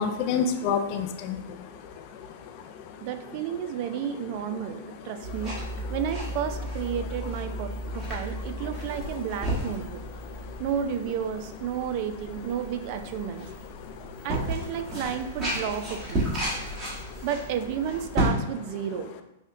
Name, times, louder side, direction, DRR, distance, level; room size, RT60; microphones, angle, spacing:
voice 1, 0.0-3.0 10.3-10.6 13.8-14.1 16.5-16.7, left 6 dB, 45° left, 7 dB, 0.4 m, -31 dB
voice 2, 3.0-5.6 5.9-10.0 10.6-13.5 14.2-16.2 17.2-19.1, right 8 dB, 50° right, 8 dB, 0.3 m, -32 dB
sound 1, 5.2-18.3, right 1 dB, 20° right, 1.2 m, -33 dB
5.6 x 2.1 x 2.6 m, 0.88 s
hypercardioid pair, 125°, 0 cm